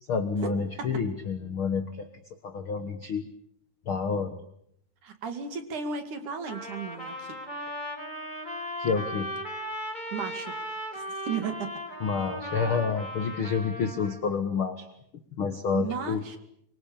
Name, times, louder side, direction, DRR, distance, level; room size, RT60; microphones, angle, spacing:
voice 1, 0.1-2.1 2.4-3.2 3.9-4.4 8.8-9.3 12.0-14.8 15.4-16.2, left 5 dB, 75° left, 8 dB, 1.2 m, -29 dB
voice 2, 5.0-7.4 10.1-10.5 10.9-11.7 15.7-16.4, right 6 dB, 55° right, 8 dB, 3.4 m, -34 dB
Trumpet, 6.5-14.2, equal, 10° left, 4.5 m, -37 dB
24.5 x 24.5 x 8.7 m, 0.75 s
omnidirectional pair, 4.8 m